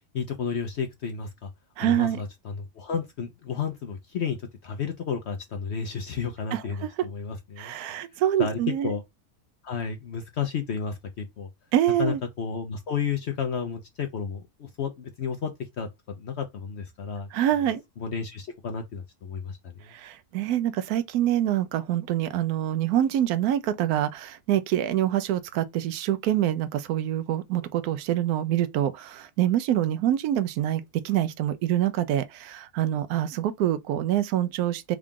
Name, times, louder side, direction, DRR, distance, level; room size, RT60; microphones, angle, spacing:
voice 1, 0.1-1.5 1.8-4.4 4.6-7.7 8.4-9.0 9.6-11.5 12.0-15.5 15.8-17.3 18.0-19.6 19.8-19.9, left 6 dB, 60° left, 0.7 m, -32 dB
voice 2, 1.8-2.2 6.5-6.9 7.6-9.0 11.7-12.2 17.3-17.8 19.9-35.0, right 12 dB, 75° right, 1.0 m, -26 dB
3.7 x 2.4 x 3.6 m
omnidirectional pair, 1.7 m